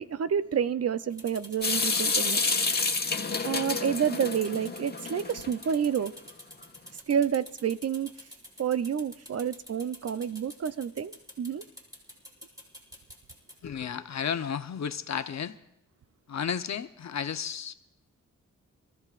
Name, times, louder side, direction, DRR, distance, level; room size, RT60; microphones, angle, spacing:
voice 1, 0.0-2.6 3.4-6.1 7.1-8.1 8.6-11.6, right 8 dB, 50° right, 0.6 m, -29 dB
sound 1, 1.1-13.5, equal, 10° right, 4.2 m, -48 dB
Water tap faucet / Sink (filling or washing) / Drip, 1.6-5.7, left 4 dB, 30° left, 1.3 m, -29 dB
voice 2, 13.6-15.6 16.3-17.7, left 7 dB, 60° left, 0.9 m, -33 dB
26.5 x 14.5 x 2.5 m
cardioid pair, 70°, 31 cm